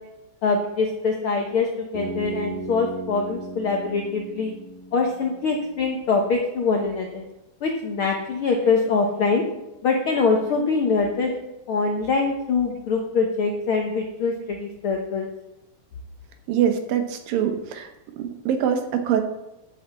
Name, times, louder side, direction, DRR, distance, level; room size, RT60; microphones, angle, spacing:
voice 1, 0.4-4.5 4.9-7.2 7.6-9.4 9.8-11.3 11.7-15.3, left 4 dB, 85° left, 1 dB, 1.1 m, -23 dB
Bass guitar, 1.9-5.9, right 3 dB, 30° right, 1.9 m, -37 dB
voice 2, 16.5-17.9 18.2-19.2, right 8 dB, 80° right, 6 dB, 2.7 m, -23 dB
9.8 x 5.7 x 7.6 m, 0.96 s
omnidirectional pair, 4.0 m